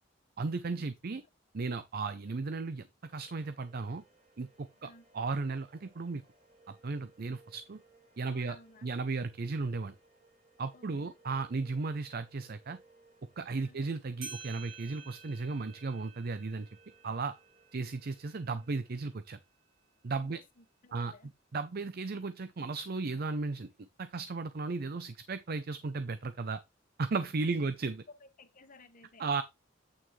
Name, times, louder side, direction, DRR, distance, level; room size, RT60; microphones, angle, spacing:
voice 1, 0.4-1.2 1.5-4.0 4.4-6.2 6.7-7.8 8.2-8.6 8.8-9.9 10.6-12.8 13.4-16.7 17.0-17.3 17.7-19.4 20.0-20.4 20.9-21.1 21.5-23.7 24.0-26.6 27.0-28.0 29.2-29.4, right 3 dB, 50° right, 0.6 m, -35 dB
sound 1, 3.1-19.2, right 2 dB, 35° right, 3.1 m, -65 dB
voice 2, 8.3-8.9 10.7-11.1 13.6-13.8 20.1-21.3 27.4-27.6 28.2-29.3, left 3 dB, 45° left, 1.4 m, -58 dB
sound 2, 13.9-14.0 14.2-19.3, right 5 dB, 85° right, 5.6 m, -51 dB
8.9 x 6.2 x 3.1 m
head